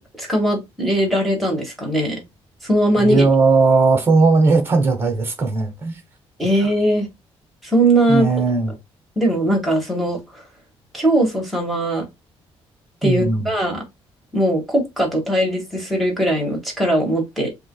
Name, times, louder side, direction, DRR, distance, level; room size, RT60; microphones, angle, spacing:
voice 1, 0.2-2.2 2.6-3.2 6.4-7.1 7.6-8.3 9.2-10.2 10.9-12.1 13.0-13.8 14.3-17.5, right 1 dB, ahead, 2.1 m, -19 dB
voice 2, 3.0-6.0 8.1-8.7 13.0-13.5, right 3 dB, 20° right, 1.4 m, -17 dB
7.5 x 3.0 x 2.3 m
cardioid pair, 155°, 11 cm